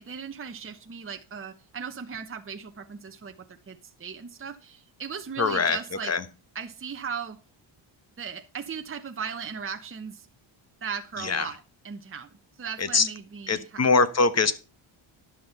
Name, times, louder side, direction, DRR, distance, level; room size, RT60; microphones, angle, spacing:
voice 1, 0.0-6.1 6.5-7.4 8.2-10.3 10.8-12.3 12.6-13.8, right 6 dB, 25° right, 1.0 m, -37 dB
voice 2, 5.4-5.8 6.0-6.2 11.2-11.5 12.8-13.1 13.5-14.5, left 4 dB, 30° left, 1.2 m, -23 dB
11.5 x 6.4 x 5.7 m
cardioid pair, 85°, 48 cm